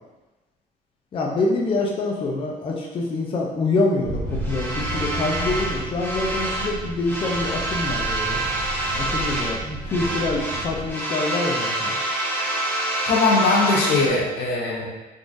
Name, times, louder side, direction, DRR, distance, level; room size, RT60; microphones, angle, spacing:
voice 1, 1.1-8.4 9.0-11.9, left 2 dB, 30° left, -1 dB, 0.4 m, -25 dB
sound 1, 4.0-10.9, right 1 dB, 40° right, 0.9 m, -33 dB
sound 2, 4.4-6.7 7.0-9.6 9.9-14.1, right 1 dB, 15° left, 0.9 m, -27 dB
voice 2, 13.1-14.9, left 3 dB, 80° left, -3 dB, 0.8 m, -20 dB
3.7 x 2.5 x 2.5 m, 1.1 s
cardioid pair, 110°, 17 cm